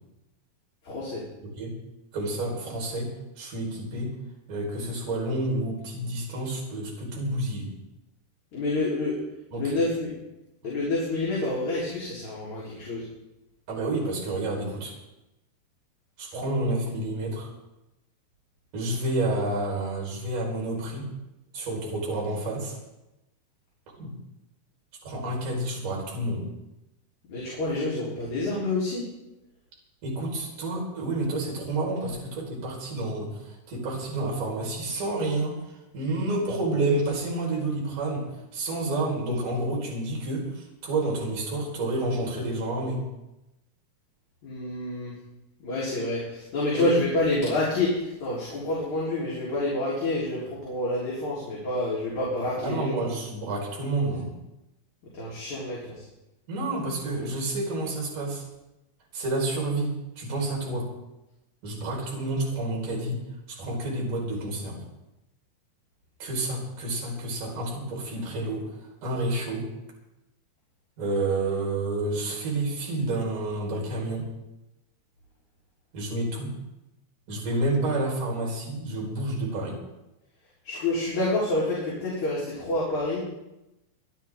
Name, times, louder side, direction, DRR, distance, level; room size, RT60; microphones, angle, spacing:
voice 1, 0.8-1.2 8.5-9.2 9.6-10.1 10.6-13.0 27.3-29.0 44.4-45.1 45.6-53.0 55.1-56.0 80.6-83.2, left 2 dB, 45° left, -7 dB, 5.0 m, -28 dB
voice 2, 1.4-1.8 2.1-4.1 4.5-7.7 9.5-9.7 13.7-14.9 16.2-17.5 18.7-21.1 21.5-22.8 24.0-24.1 25.0-26.5 30.0-38.3 38.5-43.0 46.7-47.0 52.6-54.3 56.5-58.4 59.1-60.9 61.6-63.2 63.5-64.8 66.2-69.7 71.0-74.3 75.9-76.5 77.3-79.8, right 2 dB, 50° right, -2 dB, 6.0 m, -29 dB
26.0 x 12.0 x 3.7 m, 0.95 s
omnidirectional pair, 4.8 m